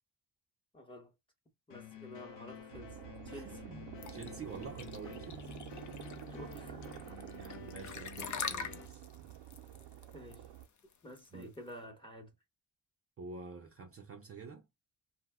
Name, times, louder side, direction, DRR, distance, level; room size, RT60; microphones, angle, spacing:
voice 1, 0.7-1.1 1.7-3.6 6.3-7.5 10.1-10.5 11.0-12.4, left 1 dB, 10° left, 0.9 m, -51 dB
sound 1, 1.7-8.9, left 7 dB, 90° left, 0.9 m, -50 dB
sound 2, 2.7-10.7, right 11 dB, 90° right, 0.5 m, -49 dB
voice 2, 3.3-5.5 7.4-9.0 11.3-11.5 13.2-14.7, right 4 dB, 35° right, 0.4 m, -48 dB
sound 3, 4.0-11.7, left 6 dB, 45° left, 0.6 m, -44 dB
2.6 x 2.1 x 3.4 m
cardioid pair, 130°, 42 cm